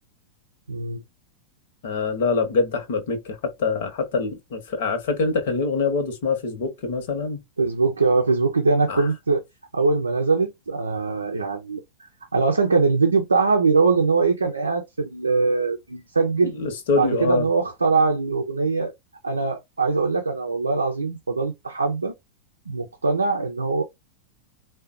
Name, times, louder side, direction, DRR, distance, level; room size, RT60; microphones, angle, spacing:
voice 1, 0.7-1.0 7.6-9.4 9.7-11.8 12.3-16.6 16.9-18.9 19.2-22.1 22.7-23.8, right 4 dB, 80° right, 0.5 m, -22 dB
voice 2, 1.8-7.4 8.9-9.0 16.4-17.5, left 4 dB, 55° left, 1.0 m, -25 dB
3.7 x 2.2 x 2.4 m
figure-of-eight pair, 90°, 0 cm